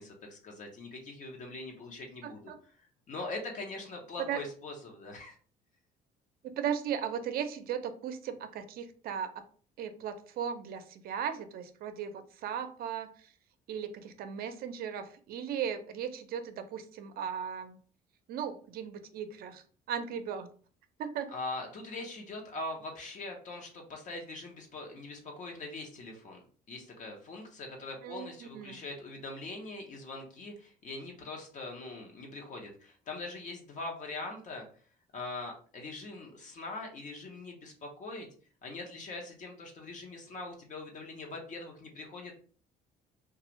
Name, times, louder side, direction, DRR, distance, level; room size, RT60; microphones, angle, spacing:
voice 1, 0.0-2.5 3.1-5.4 21.3-34.7 35.1-38.3 38.6-42.3, left 2 dB, 45° left, 1 dB, 0.8 m, -42 dB
voice 2, 2.2-2.6 4.3-4.4 6.6-9.3 9.8-13.3 13.7-17.8 18.3-20.5 21.0-21.3 28.0-28.8, right 8 dB, 60° right, 9 dB, 0.5 m, -37 dB
2.4 x 2.3 x 3.0 m, 0.43 s
cardioid pair, 110°, 17 cm